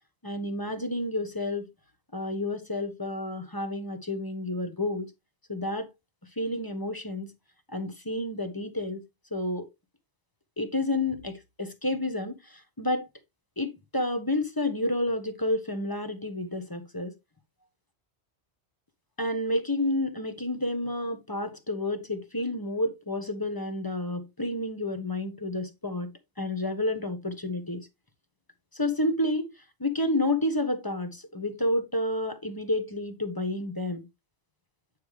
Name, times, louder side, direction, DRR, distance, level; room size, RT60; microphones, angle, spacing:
voice 1, 0.2-1.7 2.1-5.1 5.5-5.9 6.4-7.3 7.7-9.0 9.3-9.7 10.6-13.1 13.6-17.1 19.2-26.1 26.4-27.9 28.7-29.5 29.8-34.1, left 1 dB, 20° left, 1.2 m, -30 dB
9.0 x 5.0 x 3.3 m
omnidirectional pair, 1.1 m